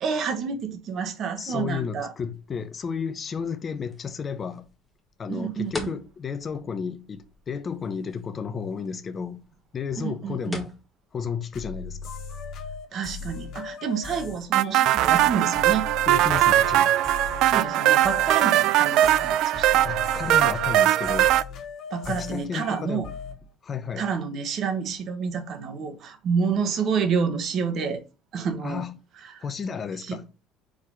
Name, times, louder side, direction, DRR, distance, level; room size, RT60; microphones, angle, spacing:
voice 1, 0.0-2.1 5.3-6.0 10.0-10.6 12.9-15.9 17.4-19.9 21.9-23.1 24.0-28.0 28.3-28.8 29.2-29.4 30.1-30.2, right 6 dB, 40° right, 1.3 m, -29 dB
voice 2, 1.4-4.7 5.2-9.4 9.7-10.8 11.1-12.1 16.1-16.9 19.8-21.4 22.0-23.1 23.6-24.1 28.6-29.0 29.4-30.2, left 6 dB, 25° left, 0.7 m, -32 dB
sound 1, 2.3-14.9, left 2 dB, 5° left, 1.4 m, -46 dB
sound 2, 11.5-23.4, left 5 dB, 45° left, 1.6 m, -38 dB
sound 3, 14.5-21.4, right 13 dB, 60° right, 0.3 m, -20 dB
4.9 x 4.2 x 5.6 m
cardioid pair, 160°, 0 cm